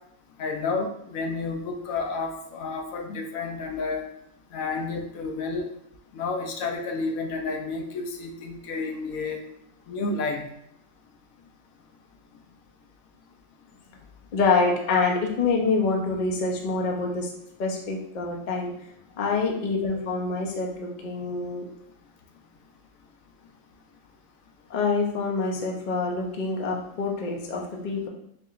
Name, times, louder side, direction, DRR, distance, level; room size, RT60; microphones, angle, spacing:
voice 1, 0.4-4.0 4.5-5.7 6.1-9.4 9.9-10.4, left 3 dB, 75° left, 4 dB, 1.0 m, -30 dB
voice 2, 14.3-17.3 17.6-18.7 19.2-21.7 24.7-28.1, left 4 dB, 50° left, -1 dB, 0.6 m, -26 dB
4.6 x 2.8 x 2.4 m, 0.74 s
omnidirectional pair, 1.4 m